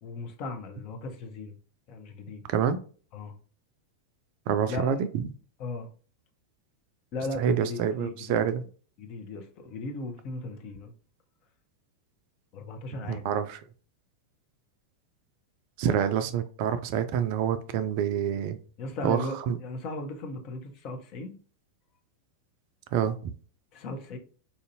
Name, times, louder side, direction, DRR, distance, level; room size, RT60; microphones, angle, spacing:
voice 1, 0.0-1.6 1.9-2.4 3.1-3.3 4.7-5.0 5.6-5.9 7.1-8.4 9.0-10.9 12.5-13.4 15.8-16.0 18.8-21.3 23.7-24.2, left 2 dB, 40° left, 0.8 m, -37 dB
voice 2, 4.5-5.2 7.4-8.6 13.1-13.6 15.8-18.6 19.0-19.2 19.5-19.6 22.9-23.2, right 8 dB, 45° right, 0.4 m, -27 dB
4.2 x 2.6 x 2.7 m
figure-of-eight pair, 90°, 0 cm